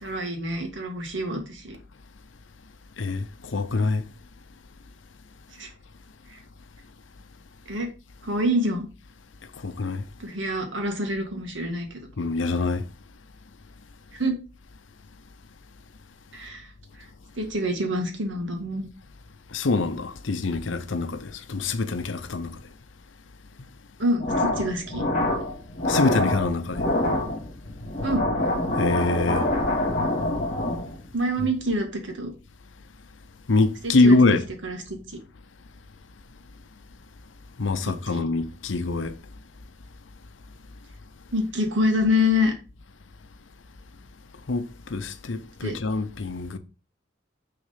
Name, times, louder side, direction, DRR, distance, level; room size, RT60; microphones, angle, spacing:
voice 1, 0.0-1.8 5.6-5.7 6.3-6.4 7.7-7.9 8.2-8.9 10.2-12.0 14.1-14.4 16.3-16.7 17.0-17.1 17.4-18.9 24.0-25.0 28.0-28.3 31.1-32.3 33.8-34.2 34.6-35.2 37.8-38.2 41.3-42.5 45.6-45.8, left 1 dB, 70° right, 1.8 m, -26 dB
voice 2, 3.5-4.0 9.6-10.0 12.2-12.8 19.5-22.5 25.9-26.8 28.8-29.5 33.5-34.4 37.6-39.1 44.5-46.6, left 3 dB, 75° left, 0.7 m, -24 dB
sound 1, 24.2-31.1, left 1 dB, 45° left, 2.2 m, -26 dB
6.5 x 3.9 x 5.6 m
head